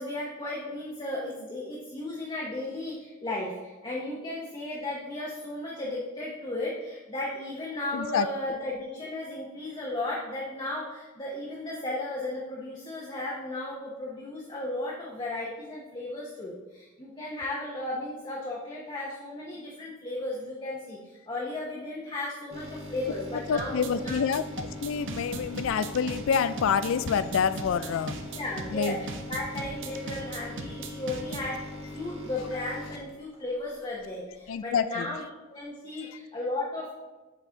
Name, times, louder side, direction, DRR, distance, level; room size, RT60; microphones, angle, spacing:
voice 1, 0.0-24.2 28.3-31.6 31.9-35.2 35.5-36.9, left 2 dB, 20° left, -5 dB, 0.8 m, -35 dB
voice 2, 7.9-8.3 23.3-28.2 28.7-29.0 34.5-35.1 35.9-36.2, left 7 dB, 65° left, 14 dB, 0.3 m, -27 dB
sound 1, 22.5-34.1 34.5-34.6, left 1 dB, 30° right, 1.0 m, -41 dB
sound 2, 23.6-31.6, right 4 dB, 60° right, 0.6 m, -39 dB
8.2 x 4.2 x 3.4 m, 1.2 s
head